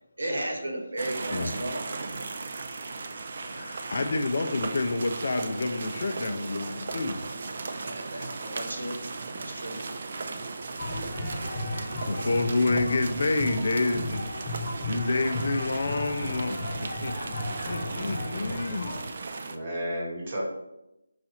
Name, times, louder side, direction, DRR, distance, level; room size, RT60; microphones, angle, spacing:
voice 1, 0.2-1.8 7.8-9.0 9.4-9.8, right 1 dB, 80° right, 1 dB, 1.1 m, -34 dB
sound 1, 1.0-19.6, right 3 dB, 45° right, 0.3 m, -37 dB
voice 2, 3.4-7.2 12.0-17.3 17.7-18.9, left 3 dB, 55° left, 7 dB, 0.4 m, -29 dB
sound 2, 10.8-19.0, left 1 dB, 35° left, 0.9 m, -35 dB
voice 3, 19.4-20.4, equal, 25° right, -4 dB, 1.1 m, -33 dB
4.0 x 2.4 x 4.3 m, 0.90 s
figure-of-eight pair, 170°, 0 cm